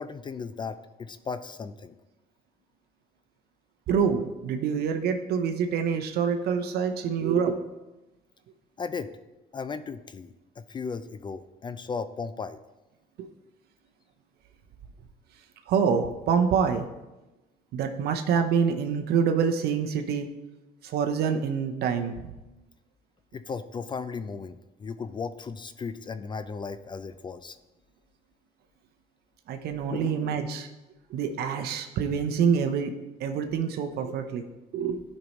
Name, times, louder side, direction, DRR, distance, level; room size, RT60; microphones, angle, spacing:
voice 1, 0.0-2.0 8.8-9.1 9.5-12.6 23.3-27.6 29.9-30.4, left 5 dB, 30° left, 12 dB, 0.4 m, -36 dB
voice 2, 3.9-7.6 13.2-13.3 15.7-16.9 17.7-20.3 20.8-22.1 29.5-30.7 31.1-32.9 33.2-34.4 34.7-35.0, right 6 dB, 70° right, 5 dB, 0.7 m, -26 dB
11.5 x 5.4 x 3.0 m, 1.1 s
cardioid pair, 110°, 17 cm